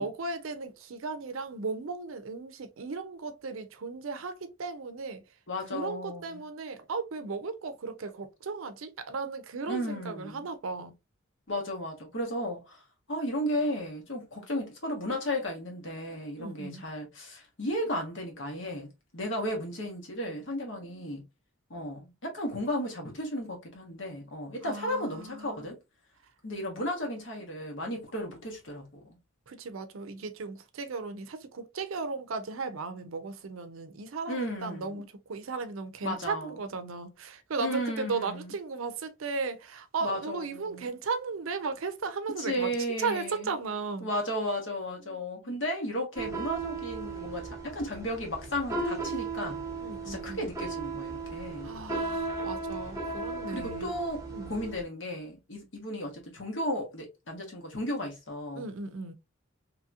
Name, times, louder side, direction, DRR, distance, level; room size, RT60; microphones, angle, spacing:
voice 1, 0.0-5.2 5.7-10.9 16.4-16.8 24.6-25.7 29.5-42.7 43.0-44.1 45.1-45.2 49.8-50.4 51.6-53.9 54.3-54.5 58.6-59.1, right 4 dB, 75° right, 0.5 m, -36 dB
voice 2, 5.5-6.4 9.7-10.5 11.5-12.8 13.1-21.2 21.7-25.8 26.4-29.2 34.3-35.0 36.0-36.5 37.6-38.5 40.0-40.9 42.4-43.5 44.0-49.6 50.0-51.7 53.5-58.6, equal, 60° left, 1.1 m, -34 dB
sound 1, 46.2-54.8, right 3 dB, 15° right, 0.8 m, -36 dB
2.9 x 2.8 x 2.3 m
head